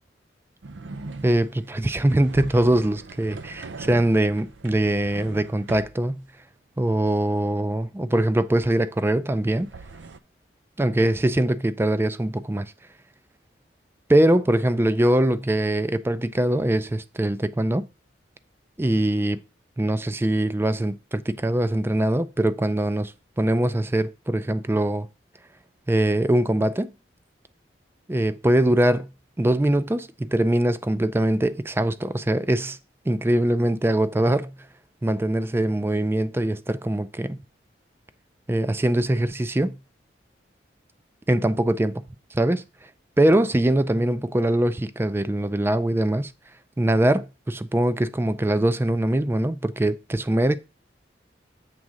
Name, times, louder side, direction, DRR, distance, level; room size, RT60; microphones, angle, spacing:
sound 1, 0.6-6.0 9.4-10.2, right 3 dB, 80° right, 0.6 m, -40 dB
voice 1, 1.2-6.2 6.8-9.7 10.8-12.7 14.1-17.8 18.8-19.4 19.8-25.1 25.9-26.9 28.1-29.1 29.4-32.8 33.1-34.5 35.0-37.4 38.5-39.8 41.3-42.0 42.3-42.6 43.2-46.3 46.8-50.6, right 1 dB, 15° right, 0.3 m, -22 dB
7.5 x 3.6 x 6.3 m
head